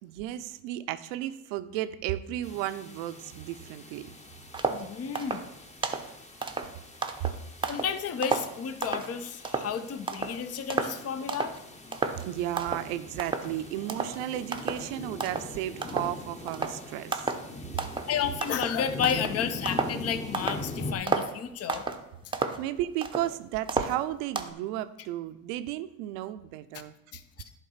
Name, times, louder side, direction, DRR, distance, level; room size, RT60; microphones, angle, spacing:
voice 1, 0.0-4.1 7.2-7.3 12.2-17.3 22.6-26.9, right 13 dB, 75° right, 12 dB, 0.7 m, -34 dB
sound 1, 2.4-20.9, left 2 dB, 15° left, 1.0 m, -42 dB
sound 2, 4.5-4.9 5.1-5.5 5.8-6.1 6.4-8.0 8.2-9.1 9.4-9.7 10.1-10.4 10.7-11.0 11.3-11.6 11.9-12.3 12.6-12.9 13.2-13.6 13.9-14.2 14.5-14.9 15.2-15.5 15.8-16.2 16.5-16.8 17.1-17.5 17.8-18.1 18.4-20.0 20.3-20.6 21.1-21.3 21.7-22.0 22.3-23.3 23.7-24.5, right 4 dB, 10° right, 0.7 m, -32 dB
voice 2, 4.7-5.4 7.7-11.6 11.9-12.0 18.1-21.9 27.1-27.5, left 8 dB, 35° left, 10 dB, 0.7 m, -32 dB
10.5 x 3.8 x 5.6 m, 0.86 s
supercardioid pair, 90°, 41 cm